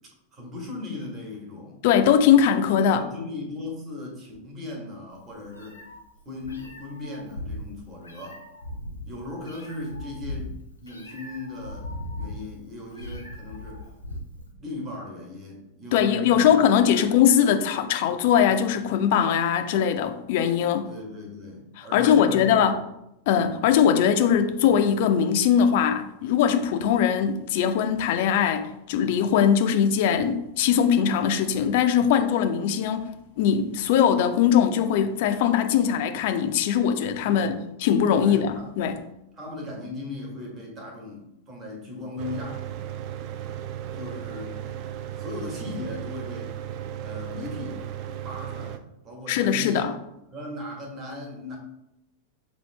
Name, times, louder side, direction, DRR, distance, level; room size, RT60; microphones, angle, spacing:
voice 1, 0.3-1.8 2.8-5.8 6.2-8.5 9.0-10.5 10.8-11.9 12.2-13.8 14.6-16.6 16.9-17.1 20.9-22.8 23.3-23.5 37.3-37.6 38.2-38.7 39.4-42.7 43.9-44.7 45.1-46.5 47.0-49.9 50.3-51.6, left 2 dB, 25° right, 1.3 m, -38 dB
voice 2, 1.8-3.0 15.9-20.9 21.9-22.8 23.3-33.1 33.4-39.0 49.3-49.9, left 8 dB, 50° left, 0.5 m, -21 dB
Meow, 5.1-14.5, left 1 dB, 80° left, 0.7 m, -38 dB
Mechanical fan, 42.2-48.8, right 10 dB, 40° right, 0.3 m, -35 dB
6.2 x 2.5 x 3.2 m
figure-of-eight pair, 90°, 0 cm